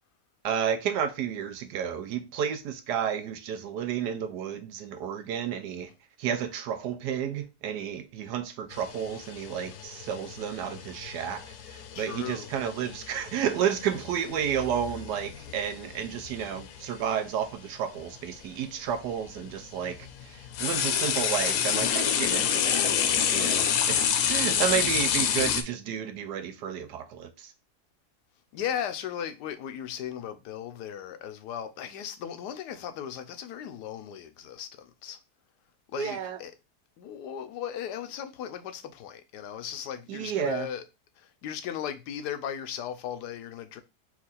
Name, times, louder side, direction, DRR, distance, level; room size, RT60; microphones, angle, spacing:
voice 1, 0.4-5.9 6.2-22.9 23.3-27.5 36.0-36.4 40.1-40.7, right 8 dB, 90° right, 1.3 m, -31 dB
sound 1, 8.7-16.9 18.0-18.1 18.9-25.6, left 8 dB, 70° left, 1.0 m, -29 dB
voice 2, 11.9-12.5 28.5-35.2 35.9-36.5 37.0-40.8 41.2-43.8, left 9 dB, 90° left, 1.2 m, -37 dB
4.5 x 2.5 x 4.0 m
omnidirectional pair, 1.7 m